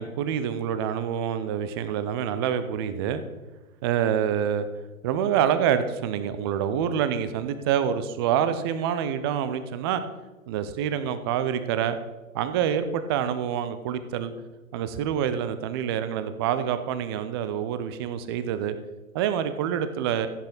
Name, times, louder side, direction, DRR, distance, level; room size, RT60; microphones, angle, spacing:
voice 1, 0.0-3.2 3.8-4.7 5.0-10.0 10.5-12.0 12.3-14.3 14.7-18.7 19.1-20.3, right 9 dB, 20° right, 11 dB, 0.5 m, -26 dB
15.0 x 8.5 x 4.0 m, 1.2 s
figure-of-eight pair, 110°, 42 cm